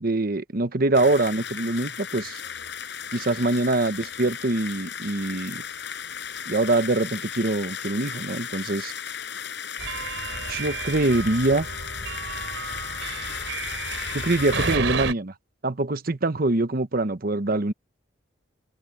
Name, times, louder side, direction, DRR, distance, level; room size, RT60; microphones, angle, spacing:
voice 1, 0.0-2.4 3.1-5.6 6.5-8.9 10.5-11.7 14.1-15.3 15.6-17.7, right 2 dB, 50° right, 1.0 m, -24 dB
sound 1, 0.9-14.8, left 8 dB, 65° left, 6.5 m, -35 dB
sound 2, 9.8-15.1, right 4 dB, 80° right, 4.0 m, -32 dB
open air
head